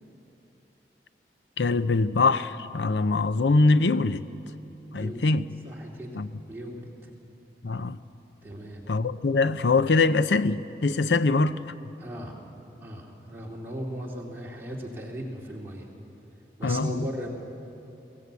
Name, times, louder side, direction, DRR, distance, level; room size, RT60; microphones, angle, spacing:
voice 1, 1.6-4.2 4.9-5.5 6.2-6.3 7.6-8.0 8.9-11.6 16.6-17.1, left 3 dB, 85° left, 0.6 m, -23 dB
voice 2, 4.8-5.2 5.6-6.2 6.5-7.1 8.4-8.8 12.0-12.4 12.8-15.9 16.6-17.3, equal, 15° right, 2.6 m, -37 dB
23.0 x 17.5 x 8.2 m
head